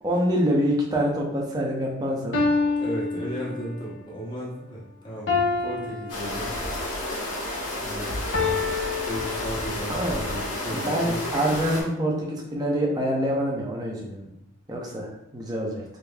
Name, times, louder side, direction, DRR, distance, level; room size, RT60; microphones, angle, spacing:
voice 1, 0.0-2.4 9.9-10.2 10.7-14.3 14.7-15.8, equal, 15° right, -2 dB, 0.7 m, -26 dB
sound 1, 2.3-3.9 5.3-6.9 8.3-10.0, left 4 dB, 55° left, 0.7 m, -27 dB
voice 2, 2.8-6.5 7.8-8.2 9.0-11.2, equal, 20° left, -6 dB, 0.9 m, -35 dB
sound 2, 6.1-11.8, left 1 dB, 80° left, 1.3 m, -31 dB
5.1 x 2.9 x 2.3 m, 0.84 s
head